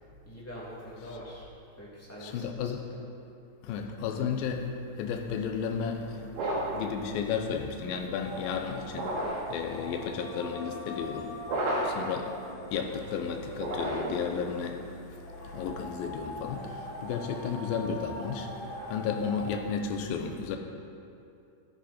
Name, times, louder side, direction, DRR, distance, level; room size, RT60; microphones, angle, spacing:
voice 1, 0.0-1.5 1.7-3.0 9.7-10.0, equal, 5° left, -7 dB, 1.1 m, -45 dB
voice 2, 2.2-2.9 3.6-20.6, left 6 dB, 80° left, 4 dB, 2.1 m, -33 dB
sound 1, 6.3-6.9 8.9-9.5 11.4-12.1 13.5-14.3, right 1 dB, 80° right, 4.5 m, -31 dB
sound 2, 8.2-19.5, left 1 dB, 40° left, 2.7 m, -43 dB
14.5 x 10.5 x 4.4 m, 2.6 s
omnidirectional pair, 5.2 m